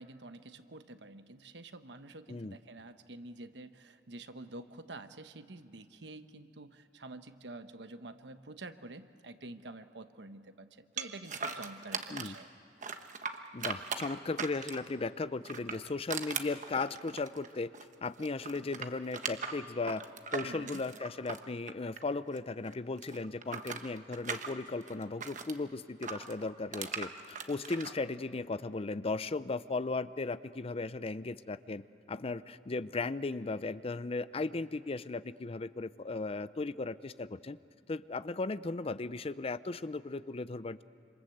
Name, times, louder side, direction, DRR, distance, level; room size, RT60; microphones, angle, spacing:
voice 1, 0.0-12.5 20.4-20.8, right 2 dB, 85° right, 9 dB, 1.1 m, -48 dB
sound 1, 11.0-12.4 12.8-15.0 15.4-17.9 18.2-22.4 22.6-25.6 26.0-27.9, right 5 dB, 45° right, 1.3 m, -39 dB
voice 2, 13.5-17.7 18.0-20.1 20.3-37.6 37.9-40.8, left 3 dB, 35° left, 15 dB, 0.5 m, -36 dB
27.0 x 27.0 x 7.9 m, 2.6 s
head